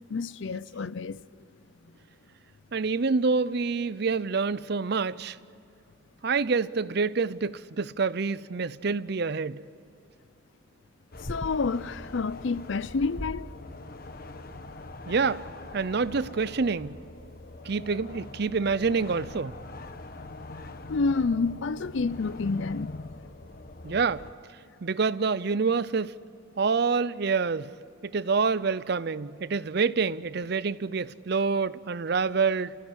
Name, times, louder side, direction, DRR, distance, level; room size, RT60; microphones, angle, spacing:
voice 1, 0.1-1.2 11.3-13.5 20.1-23.1, left 4 dB, 65° left, 0.5 m, -29 dB
voice 2, 2.7-5.4 6.2-9.6 15.1-15.5 15.7-17.0 17.6-19.6 23.8-24.3 24.8-26.1 26.6-27.7 28.0-32.8, right 4 dB, 55° right, 0.5 m, -27 dB
sound 1, 11.1-24.3, left 2 dB, 45° left, 1.1 m, -43 dB
29.0 x 16.5 x 9.9 m
head